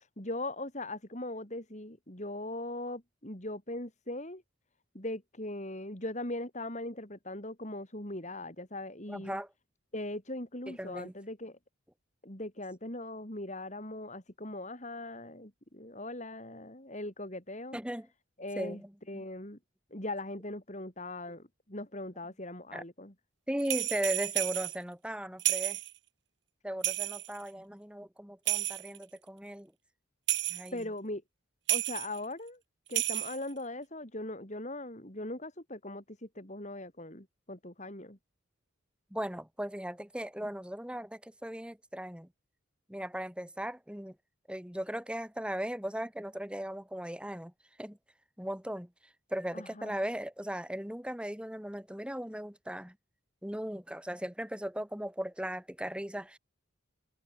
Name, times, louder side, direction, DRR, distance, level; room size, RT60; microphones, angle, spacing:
voice 1, 0.0-4.4 4.9-9.4 9.9-11.6 12.2-17.8 18.4-18.8 19.1-19.6 19.9-23.1 30.7-31.2 31.7-32.6 32.9-38.2 49.5-49.9, left 1 dB, 35° left, 3.7 m, -40 dB
voice 2, 9.1-9.5 10.7-11.1 17.7-18.1 18.6-19.2 22.7-22.8 23.5-25.8 26.6-29.7 30.5-30.9 39.1-42.3 42.9-44.2 44.5-47.5 47.8-48.0 48.4-48.9 49.3-53.0 53.4-56.4, equal, 5° right, 1.7 m, -37 dB
sound 1, 23.6-24.8 25.4-25.9 26.8-27.4 28.5-29.0 30.3-30.7 31.7-32.2 32.9-33.5, right 15 dB, 55° right, 2.3 m, -31 dB
head